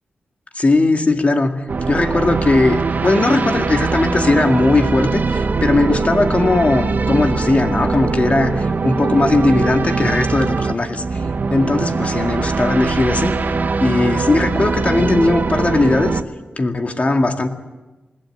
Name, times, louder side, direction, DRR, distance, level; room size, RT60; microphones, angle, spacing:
voice 1, 0.5-11.2 11.5-13.4 13.8-16.2 16.6-17.5, left 2 dB, 40° left, 5 dB, 2.1 m, -18 dB
sound 1, 1.7-16.2, right 4 dB, 55° right, 1.1 m, -21 dB
20.5 x 16.5 x 8.9 m, 1.1 s
cardioid pair, 70°, 4 cm